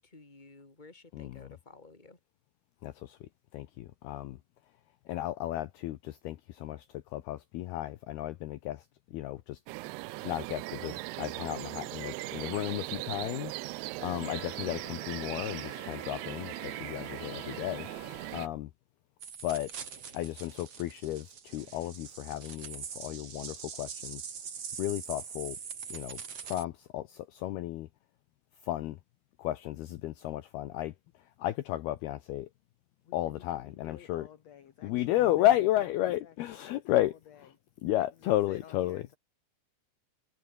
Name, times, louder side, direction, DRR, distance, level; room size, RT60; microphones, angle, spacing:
voice 1, 0.0-2.2, left 3 dB, 10° left, 3.5 m, -53 dB
voice 2, 1.1-1.6 2.8-4.4 5.1-9.6 9.9-17.9 18.3-18.7 19.4-19.7 20.1-24.3 24.8-25.6 25.9-27.9 28.6-29.0 29.4-32.5 33.1-34.3 34.8-37.1 37.8-39.0, left 14 dB, 70° left, 2.7 m, -33 dB
sound 1, 9.7-18.5, right 23 dB, 85° right, 2.4 m, -39 dB
Trumpet, 14.2-18.4, left 17 dB, 90° left, 2.0 m, -51 dB
sound 2, 19.2-26.6, right 7 dB, 40° right, 3.0 m, -43 dB
voice 3, 33.0-35.5 36.2-36.3 36.7-37.5 37.9-39.2, left 9 dB, 50° left, 2.2 m, -53 dB
omnidirectional pair, 5.1 m